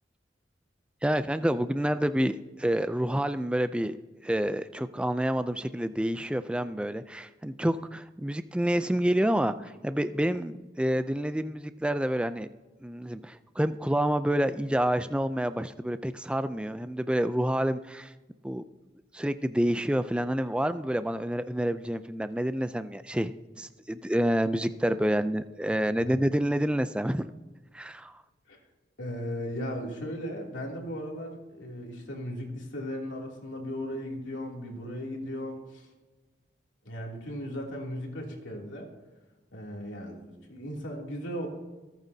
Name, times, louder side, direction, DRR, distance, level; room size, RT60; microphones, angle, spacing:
voice 1, 1.0-4.0 4.2-12.5 12.8-18.1 18.4-18.6 19.1-23.3 23.6-27.3 27.7-28.1, right 1 dB, 5° right, 11 dB, 0.3 m, -28 dB
voice 2, 29.0-35.9 36.8-38.9 39.5-41.5, equal, 90° left, -1 dB, 2.8 m, -37 dB
26.5 x 9.0 x 2.7 m, 1.2 s
head